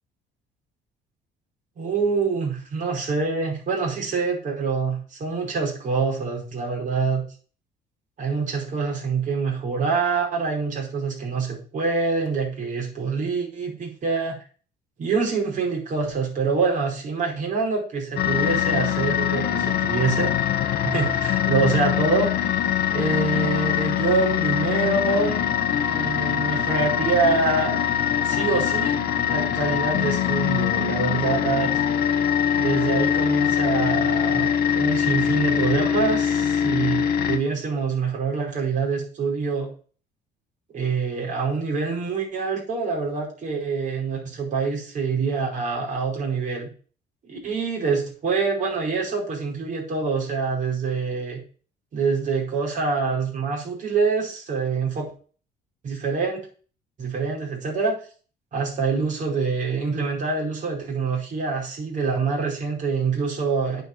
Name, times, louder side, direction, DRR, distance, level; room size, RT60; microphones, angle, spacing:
voice 1, 1.8-7.2 8.2-14.4 15.0-20.3 20.8-22.3 22.9-25.4 25.8-27.8 28.2-29.0 29.3-31.7 32.5-39.7 40.7-46.7 47.3-51.4 51.9-55.1 55.8-56.4 57.0-58.0 58.5-63.8, right 4 dB, 50° right, -1 dB, 5.1 m, -25 dB
sound 1, 18.2-37.4, left 9 dB, 70° left, 1.3 m, -23 dB
9.0 x 5.3 x 6.8 m, 0.41 s
cardioid pair, 110°, 17 cm